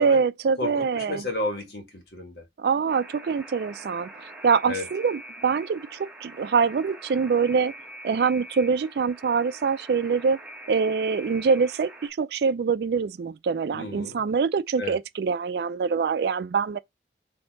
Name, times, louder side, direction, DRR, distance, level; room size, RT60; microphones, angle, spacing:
voice 1, 0.0-1.2 2.6-4.1 4.4-7.7 8.0-10.4 10.7-16.8, right 5 dB, 65° right, 0.3 m, -24 dB
voice 2, 0.6-2.4 4.6-4.9 13.7-14.2 14.8-15.0, left 2 dB, 65° left, 1.5 m, -32 dB
Alarm, 2.9-12.1, right 1 dB, 5° right, 1.1 m, -44 dB
4.3 x 2.7 x 4.5 m
head